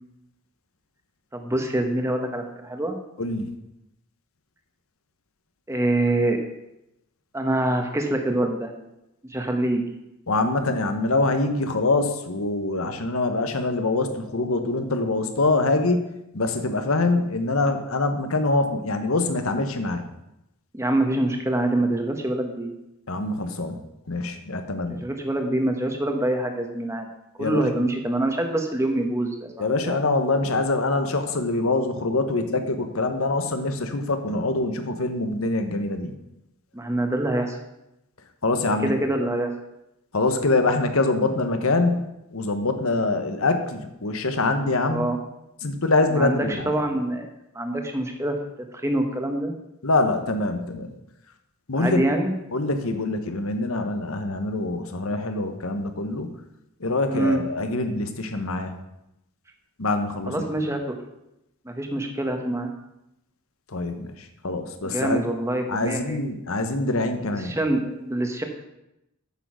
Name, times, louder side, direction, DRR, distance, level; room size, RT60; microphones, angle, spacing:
voice 1, 1.3-3.0 5.7-6.4 7.3-8.7 9.3-9.8 20.7-22.7 25.0-27.1 27.4-30.0 36.7-37.6 38.8-39.5 44.9-45.2 46.1-48.4 48.7-49.5 51.8-52.4 57.1-57.4 60.3-61.0 61.6-62.7 64.8-66.2 67.3-68.4, right 1 dB, 15° right, 4 dB, 1.1 m, -25 dB
voice 2, 3.2-3.5 10.3-16.1 16.3-20.0 23.1-23.8 24.1-25.0 27.4-27.6 29.6-36.1 38.4-38.9 40.1-42.0 42.3-45.1 45.6-46.8 49.8-50.9 51.7-52.0 52.5-56.3 56.8-58.7 59.8-60.3 63.7-65.3 65.7-67.6, left 2 dB, 70° left, 7 dB, 1.1 m, -24 dB
8.7 x 6.4 x 6.2 m, 0.87 s
head